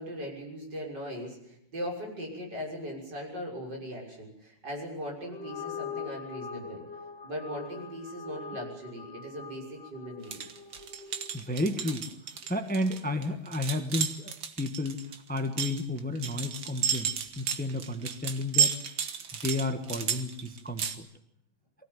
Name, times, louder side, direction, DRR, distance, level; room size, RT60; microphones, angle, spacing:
voice 1, 0.0-6.8 7.2-10.4, equal, 60° right, -1 dB, 7.1 m, -39 dB
sound 1, 5.2-11.8, left 6 dB, 65° left, 3.3 m, -43 dB
sound 2, 10.2-21.0, right 7 dB, 85° right, 2.3 m, -32 dB
voice 2, 11.3-12.0 12.5-15.0 15.3-18.7 19.4-21.1, left 2 dB, 5° left, 7 dB, 1.3 m, -32 dB
23.5 x 17.0 x 9.4 m, 0.73 s
omnidirectional pair, 2.1 m